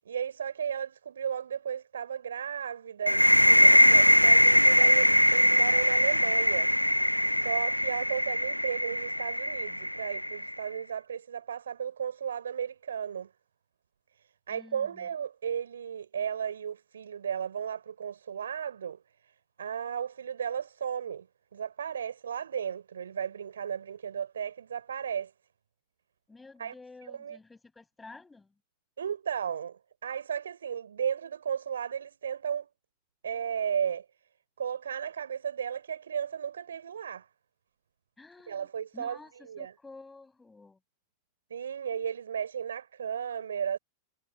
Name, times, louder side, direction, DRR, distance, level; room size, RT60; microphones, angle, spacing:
voice 1, 0.1-6.7 7.2-13.3 14.5-19.0 19.6-21.3 21.5-25.3 26.6-26.7 27.2-27.4 29.0-32.7 33.2-34.0 34.6-37.3 38.5-39.2 39.5-39.7 41.5-43.8, right 8 dB, 65° right, 4.1 m, -34 dB
sound 1, 3.1-10.6, equal, 90° left, 0.8 m, -22 dB
voice 2, 14.5-15.1 26.3-28.5 38.2-38.7 38.9-40.8, left 3 dB, 10° left, 7.7 m, -51 dB
figure-of-eight pair, 90°, 0 cm